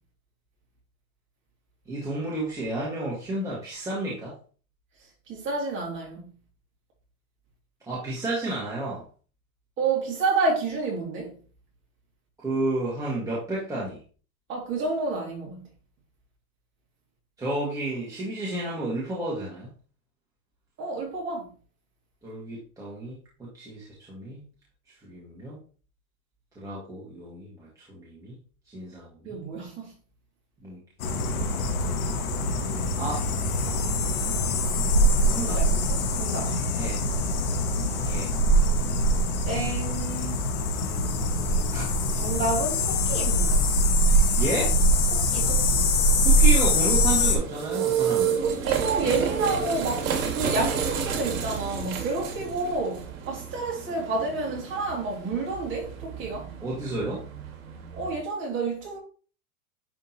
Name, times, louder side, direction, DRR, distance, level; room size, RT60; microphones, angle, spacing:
voice 1, 1.9-4.4 7.9-9.1 12.4-14.0 17.4-19.7 22.2-24.4 25.0-25.6 26.5-28.3 28.7-29.3 30.6-30.8 32.9-33.3 35.3-35.6 36.8-37.0 38.0-38.3 41.7-41.9 44.4-44.8 46.2-48.4 56.6-57.2, right 2 dB, 10° right, 1.7 m, -31 dB
voice 2, 5.3-6.3 9.8-11.3 14.5-15.6 20.8-21.5 29.2-29.9 35.4-36.5 39.4-40.4 42.2-43.7 45.1-45.9 48.4-50.1 50.3-56.5 57.9-59.0, right 3 dB, 25° right, 2.5 m, -30 dB
sound 1, 31.0-47.4, equal, 70° left, 1.7 m, -23 dB
sound 2, 46.8-58.2, right 7 dB, 65° right, 2.1 m, -31 dB
10.0 x 3.7 x 2.9 m
supercardioid pair, 150°, 43 cm